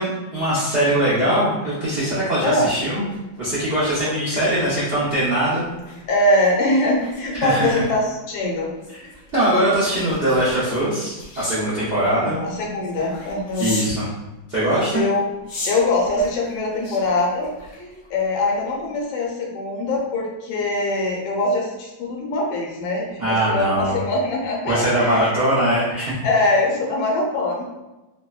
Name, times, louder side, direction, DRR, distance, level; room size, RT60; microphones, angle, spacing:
voice 1, 0.0-3.0 3.4-5.7 7.4-7.8 9.3-12.4 13.6-14.1 14.5-15.0 23.2-24.0 24.7-26.1, right 1 dB, 65° right, -9 dB, 0.6 m, -21 dB
voice 2, 2.4-2.7 6.1-8.7 12.0-13.7 14.9-15.3 15.6-17.5 18.1-25.4 26.2-27.6, left 2 dB, 80° left, -1 dB, 1.4 m, -22 dB
sound 1, 2.8-14.0 14.6-18.3 18.7-18.9, left 2 dB, 60° left, 0.9 m, -39 dB
3.2 x 2.1 x 2.3 m, 1.0 s
omnidirectional pair, 2.1 m